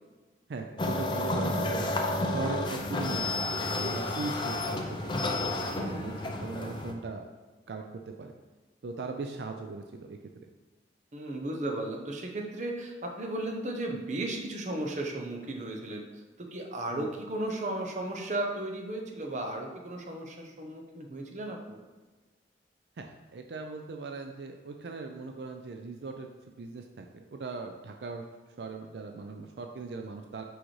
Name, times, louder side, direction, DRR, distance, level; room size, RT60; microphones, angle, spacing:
voice 1, 0.5-1.9 2.3-5.3 5.7-7.3 7.7-8.3 8.8-10.2 16.9-17.1 23.0-26.3 26.6-28.2 28.6-30.4, right 3 dB, 75° right, 4 dB, 0.4 m, -39 dB
sound 1, 0.8-6.9, left 2 dB, 25° left, 0.5 m, -31 dB
voice 2, 5.7-6.2 11.1-16.1 16.4-21.8, right 1 dB, 40° right, 2 dB, 0.7 m, -35 dB
6.2 x 4.8 x 3.2 m, 1.3 s
head